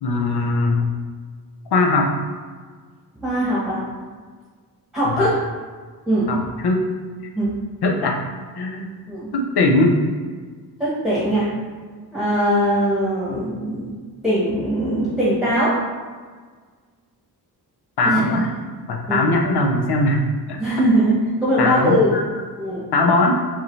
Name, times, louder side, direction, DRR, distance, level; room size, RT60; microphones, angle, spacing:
voice 1, 0.0-0.9 1.7-2.1 5.0-5.3 6.3-6.9 7.8-8.2 8.5-8.9 9.3-10.0 18.0-18.5 18.9-20.2 20.5-20.6 21.6-22.3 22.9-23.3, left 2 dB, 85° left, 2 dB, 0.7 m, -20 dB
voice 2, 3.2-3.8 4.9-5.3 6.1-6.3 7.3-7.6 9.1-9.3 10.8-11.5 12.1-13.9 14.2-15.8 18.0-18.2 18.5-18.6 19.1-19.3 20.6-21.1 21.4-22.2 22.6-22.8, equal, ahead, -10 dB, 1.1 m, -20 dB
5.6 x 2.7 x 3.1 m, 1.5 s
wide cardioid pair, 135°, 38 cm